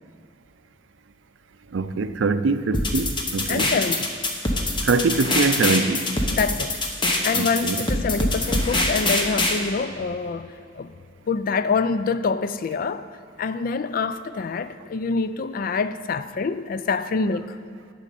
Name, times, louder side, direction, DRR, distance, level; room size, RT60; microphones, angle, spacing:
voice 1, 1.7-3.7 4.8-6.1 7.3-7.8, right 3 dB, 80° right, 0.5 m, -23 dB
sound 1, 2.7-9.6, left 2 dB, 25° left, 1.0 m, -24 dB
voice 2, 3.5-4.1 6.3-6.8 7.2-10.9 11.3-13.1 13.4-17.6, left 4 dB, 50° left, 0.4 m, -26 dB
8.7 x 6.4 x 8.4 m
head